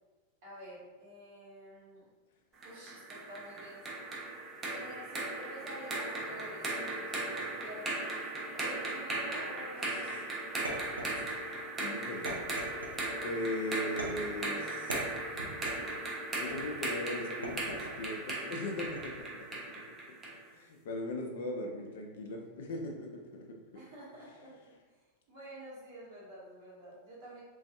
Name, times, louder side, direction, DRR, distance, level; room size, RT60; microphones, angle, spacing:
voice 1, 0.4-2.1 2.6-4.0 4.7-8.1 8.5-10.1 23.7-24.5 25.3-27.4, equal, 50° right, -7 dB, 1.0 m, -49 dB
sound 1, 2.6-20.4, right 2 dB, 20° right, 0.5 m, -38 dB
voice 2, 9.8-10.2 11.0-11.2 11.8-12.4 13.2-15.0 16.1-19.6 20.5-23.6, left 1 dB, 55° left, 1 dB, 0.3 m, -39 dB
sound 2, 10.6-11.6 12.2-13.2 14.0-14.4 14.9-15.9 16.5-16.9 17.4-18.1 18.8-19.3, right 1 dB, 80° right, 0.5 m, -42 dB
2.4 x 2.3 x 2.3 m, 1.3 s
figure-of-eight pair, 90°, 0 cm